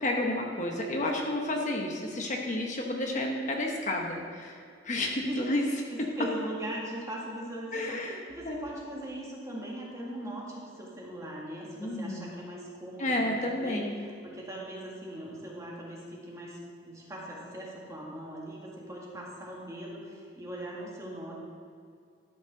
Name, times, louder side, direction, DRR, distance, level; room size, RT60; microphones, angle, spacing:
voice 1, 0.0-4.6 4.8-5.6 7.7-8.2 8.4-8.6 11.8-12.3 13.0-14.0, left 1 dB, 40° left, 1 dB, 1.0 m, -31 dB
voice 2, 5.3-21.4, right 1 dB, 15° right, -4 dB, 1.9 m, -40 dB
12.5 x 5.4 x 5.9 m, 2.3 s
head